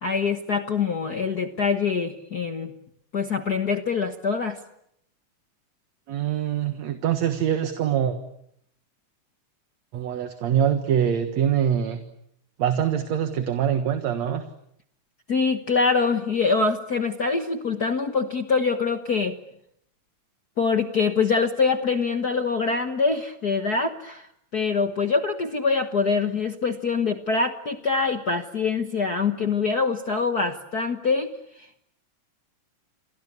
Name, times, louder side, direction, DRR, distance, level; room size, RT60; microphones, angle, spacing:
voice 1, 0.0-2.7 3.1-4.6 15.3-19.3 20.6-24.3 24.5-31.3 31.6-31.7, left 4 dB, 60° left, 7 dB, 1.0 m, -24 dB
voice 2, 6.1-8.2 9.9-12.0 12.6-14.4, right 9 dB, 60° right, 8 dB, 2.5 m, -24 dB
29.5 x 23.0 x 8.3 m, 0.74 s
omnidirectional pair, 3.8 m